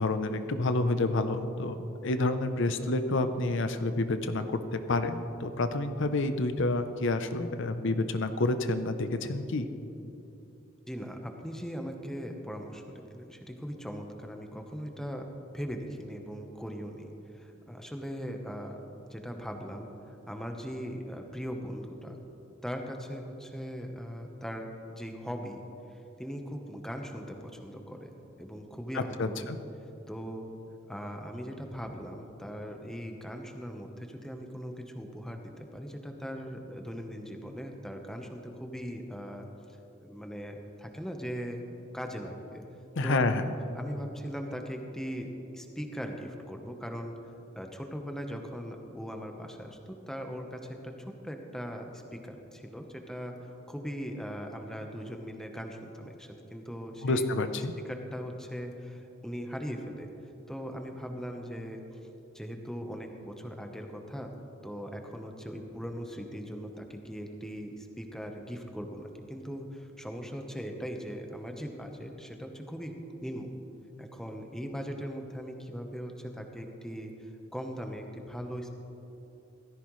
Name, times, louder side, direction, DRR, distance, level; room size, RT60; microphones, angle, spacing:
voice 1, 0.0-1.8 2.0-9.7 28.9-29.6 43.0-43.4 57.0-57.7, left 2 dB, 65° left, 9 dB, 0.7 m, -29 dB
voice 2, 10.9-18.8 19.1-22.2 22.6-25.6 26.2-29.5 30.1-30.5 30.9-39.5 40.0-41.6 41.9-42.6 43.0-43.3 43.7-47.2 47.5-51.9 52.2-53.3 53.7-57.3 57.8-60.1 60.5-62.0 62.3-64.3 64.6-72.9 73.2-73.5 74.0-78.8, equal, 5° left, 3 dB, 1.0 m, -39 dB
17.0 x 14.5 x 3.2 m, 3.0 s
head